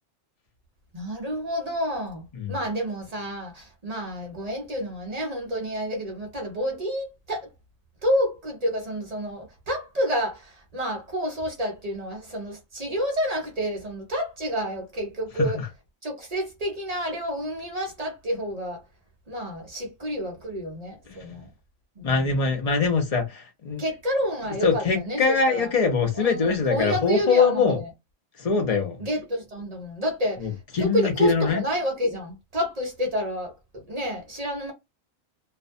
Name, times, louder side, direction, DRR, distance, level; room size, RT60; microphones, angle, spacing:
voice 1, 0.9-7.5 8.0-15.6 16.0-18.8 19.3-21.5 22.0-22.5 23.8-25.7 26.1-27.9 29.0-30.5 30.8-34.7, equal, 40° right, 0.6 m, -29 dB
voice 2, 22.0-23.8 24.6-27.8 28.4-29.0 30.4-31.6, left 4 dB, 45° left, 0.5 m, -23 dB
2.5 x 2.1 x 2.5 m
omnidirectional pair, 1.4 m